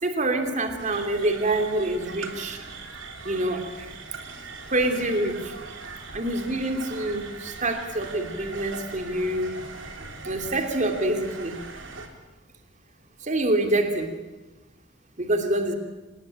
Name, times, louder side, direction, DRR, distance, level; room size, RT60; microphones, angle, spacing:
voice 1, 0.0-2.6 3.2-3.9 4.7-5.5 6.1-9.6 10.2-11.6 13.2-14.1 15.2-15.8, right 1 dB, 40° right, 5 dB, 2.8 m, -26 dB
sound 1, 0.8-12.1, right 4 dB, 80° right, 3.4 m, -40 dB
25.5 x 20.5 x 9.0 m, 1.1 s
head